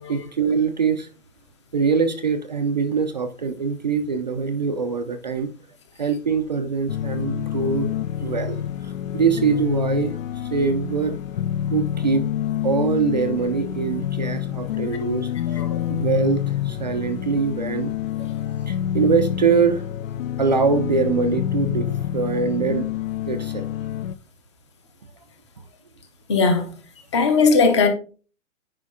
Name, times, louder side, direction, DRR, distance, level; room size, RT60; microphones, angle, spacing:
voice 1, 0.1-1.1 1.7-5.5 6.0-7.9 8.2-11.2 11.7-12.3 12.6-15.6 15.9-17.9 18.2-18.3 18.7-19.9 20.4-22.9 23.3-23.7, right 5 dB, 35° right, 0.5 m, -23 dB
sound 1, 6.9-24.2, left 11 dB, 80° left, 0.6 m, -27 dB
voice 2, 26.3-26.7 27.1-27.9, left 4 dB, 20° left, 0.8 m, -18 dB
9.6 x 5.1 x 3.7 m
hypercardioid pair, 170°, 40 cm